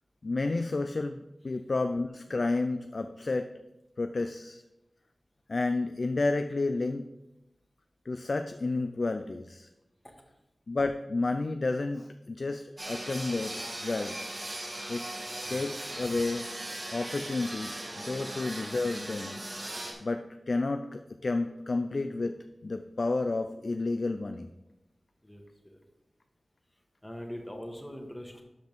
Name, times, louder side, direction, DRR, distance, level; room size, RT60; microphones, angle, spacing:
voice 1, 0.2-3.5 4.0-4.6 5.5-7.1 8.1-9.7 10.7-14.2 14.9-15.1 15.5-16.5 16.9-19.4 20.0-22.4 22.6-24.5, left 3 dB, 60° left, 7 dB, 0.4 m, -31 dB
sound 1, 12.8-19.9, right 1 dB, 45° right, 2.4 m, -38 dB
voice 2, 25.2-25.8 27.0-28.4, equal, 15° left, 2 dB, 1.7 m, -42 dB
12.0 x 5.1 x 3.5 m, 0.95 s
cardioid pair, 45°, 0 cm